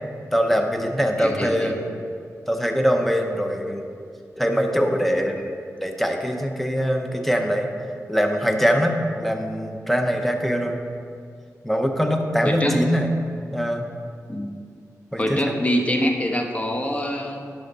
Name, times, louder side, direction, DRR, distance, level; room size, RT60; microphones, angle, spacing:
voice 1, 0.3-1.9 2.5-3.9 4.4-7.7 8.1-10.8 11.6-13.1 13.5-13.8 15.1-15.5, equal, 5° left, 4 dB, 0.8 m, -23 dB
voice 2, 1.2-1.7 12.4-12.8 14.3-14.5 15.2-17.5, equal, 25° left, 3 dB, 1.0 m, -24 dB
11.5 x 5.1 x 4.0 m, 2.3 s
wide cardioid pair, 80°, 6 cm